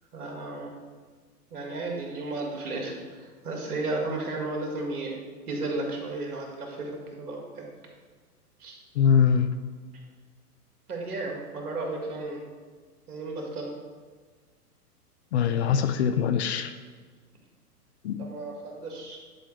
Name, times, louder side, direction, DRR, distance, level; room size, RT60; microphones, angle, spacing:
voice 1, 0.1-0.7 1.5-5.2 5.5-7.7 8.6-8.8 10.9-12.5 13.1-13.7 18.2-19.2, right 2 dB, 70° right, 0 dB, 1.9 m, -34 dB
voice 2, 8.9-9.5 15.3-16.7 18.0-18.2, left 7 dB, 45° left, 10 dB, 0.5 m, -22 dB
10.0 x 4.8 x 3.3 m, 1.5 s
hypercardioid pair, 120°, 47 cm